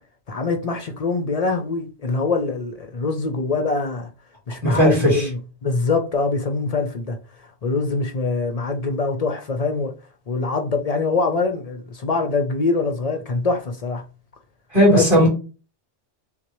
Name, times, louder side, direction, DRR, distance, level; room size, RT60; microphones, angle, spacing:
voice 1, 0.3-4.1 4.5-7.2 7.6-9.9 10.3-14.0 14.9-15.3, left 3 dB, 45° left, 0.5 m, -24 dB
voice 2, 4.6-5.3 14.7-15.3, equal, 35° right, 2.6 m, -16 dB
6.1 x 2.2 x 3.0 m
omnidirectional pair, 1.1 m